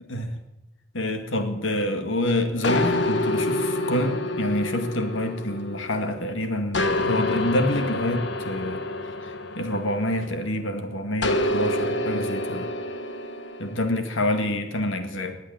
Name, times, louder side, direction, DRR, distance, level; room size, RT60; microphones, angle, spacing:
voice 1, 0.9-8.8 9.6-12.7 13.6-15.4, left 1 dB, 85° left, 6 dB, 2.0 m, -27 dB
sound 1, 2.6-6.2 6.7-10.5 11.2-13.9, left 1 dB, 65° left, 1.3 m, -27 dB
20.5 x 8.2 x 7.7 m, 0.98 s
head